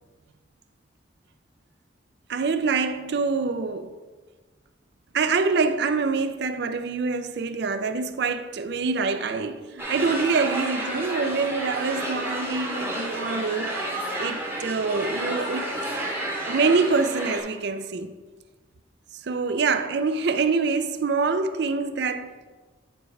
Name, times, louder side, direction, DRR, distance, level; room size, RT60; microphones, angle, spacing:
voice 1, 2.3-4.0 5.1-13.9 14.2-15.7 16.5-18.1 19.2-22.4, right 4 dB, 60° right, 0.4 m, -25 dB
sound 1, 9.8-17.4, right 1 dB, 15° right, 0.9 m, -31 dB
9.3 x 4.7 x 3.3 m
head